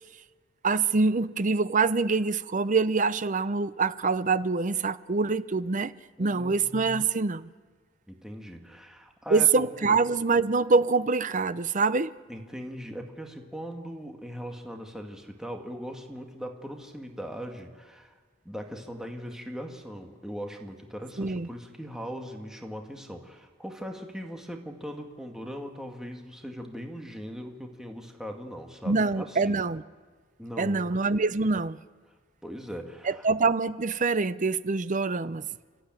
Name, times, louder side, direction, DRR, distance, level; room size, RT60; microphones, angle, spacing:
voice 1, 0.6-5.9 6.2-7.5 9.3-12.1 21.2-21.5 28.9-29.8 30.6-31.8 33.1-35.4, right 4 dB, 40° right, 0.7 m, -25 dB
voice 2, 6.2-6.6 8.1-10.0 12.3-18.1 18.5-29.7 30.4-31.0 32.4-33.3, equal, 5° right, 1.9 m, -40 dB
29.5 x 13.5 x 9.1 m
head